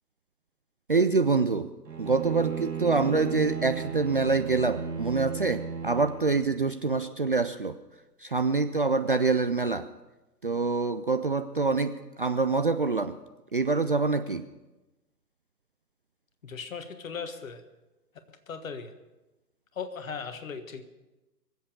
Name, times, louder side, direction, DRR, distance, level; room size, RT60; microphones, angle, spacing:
voice 1, 0.9-1.7 2.0-7.8 8.2-9.9 10.4-13.2 13.5-14.4, right 4 dB, 35° right, 8 dB, 0.4 m, -26 dB
Bowed string instrument, 1.8-6.7, right 7 dB, 80° right, 1.4 m, -35 dB
voice 2, 16.4-17.6 18.5-18.9 19.7-20.8, left 5 dB, 55° left, 8 dB, 1.6 m, -37 dB
23.5 x 8.0 x 6.8 m, 1.1 s
figure-of-eight pair, 125°, 49 cm